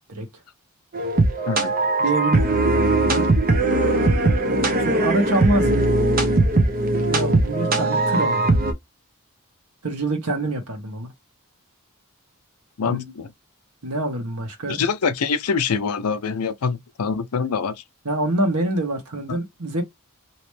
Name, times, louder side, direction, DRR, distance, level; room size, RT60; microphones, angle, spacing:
sound 1, 0.9-8.7, right 2 dB, 40° right, 0.8 m, -20 dB
voice 1, 2.0-3.2 4.8-5.8 7.1-8.6 9.8-11.1 12.8-13.1 13.8-14.8 18.0-19.8, right 2 dB, 90° right, 1.5 m, -25 dB
voice 2, 12.8-13.3 14.7-17.8 19.3-19.4, left 5 dB, 80° left, 0.6 m, -25 dB
3.0 x 2.9 x 3.1 m
head